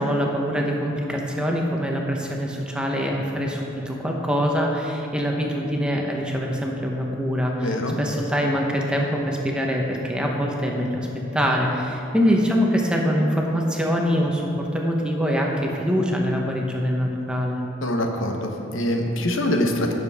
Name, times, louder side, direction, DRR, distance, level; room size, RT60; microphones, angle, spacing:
voice 1, 0.0-11.1 11.3-17.6, equal, 5° right, -1 dB, 0.9 m, -24 dB
voice 2, 7.6-7.9 17.8-19.9, left 1 dB, 85° left, 3 dB, 1.0 m, -24 dB
15.5 x 6.7 x 3.5 m, 2.9 s
head